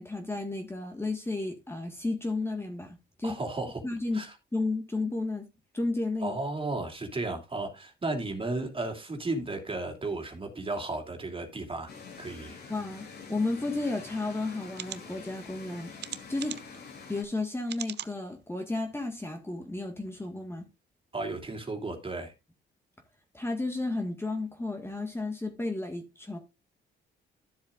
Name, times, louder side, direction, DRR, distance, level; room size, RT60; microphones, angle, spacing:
voice 1, 0.0-3.4 3.8-4.2 4.5-5.5 5.7-6.4 12.7-15.9 16.3-16.6 17.1-20.7 23.3-26.4, left 2 dB, 10° left, 1.7 m, -33 dB
voice 2, 3.2-3.8 4.1-4.4 6.2-11.9 12.2-12.6 21.1-22.3, right 2 dB, 25° right, 2.8 m, -34 dB
sound 1, 11.9-17.2, left 5 dB, 55° left, 3.1 m, -46 dB
sound 2, 14.0-14.1 14.7-15.0 16.0-16.8 17.7-18.1 18.7-18.8 19.1-19.2, right 10 dB, 60° right, 0.7 m, -39 dB
13.0 x 7.4 x 2.5 m
cardioid pair, 90°, 20 cm